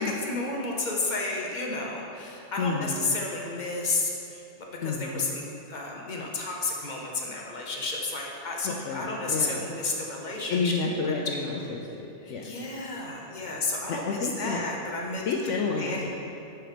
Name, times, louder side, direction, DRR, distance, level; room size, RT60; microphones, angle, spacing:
voice 1, 0.0-4.4 4.8-11.7 12.2-15.2 15.8-16.1, left 3 dB, 45° left, -1 dB, 0.8 m, -32 dB
voice 2, 2.6-3.0 4.8-5.2 8.6-9.6 10.5-12.5 13.4-13.5 14.1-14.6 15.3-16.1, left 4 dB, 90° left, -1 dB, 0.9 m, -30 dB
6.1 x 4.5 x 5.0 m, 2.7 s
omnidirectional pair, 1.2 m